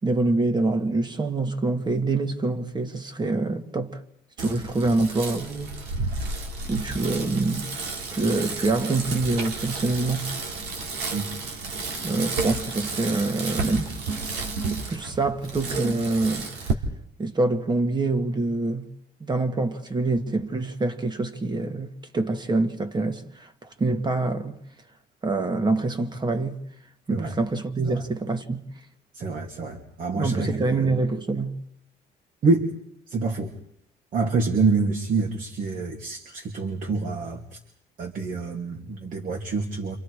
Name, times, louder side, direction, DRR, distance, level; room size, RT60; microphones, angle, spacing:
voice 1, 0.0-4.0 4.4-5.8 6.7-7.7 8.1-10.3 12.0-14.2 14.7-16.7 17.2-18.9 19.2-24.6 25.2-26.6 27.1-28.7 30.2-31.6, right 3 dB, 25° right, 2.2 m, -26 dB
Bicycle, 4.4-16.7, right 3 dB, 80° right, 3.5 m, -32 dB
voice 2, 29.1-30.8 32.4-32.7 33.1-33.5 34.1-37.4 38.0-40.0, right 3 dB, 55° right, 3.0 m, -26 dB
29.5 x 27.0 x 5.0 m
cardioid pair, 110°, 17 cm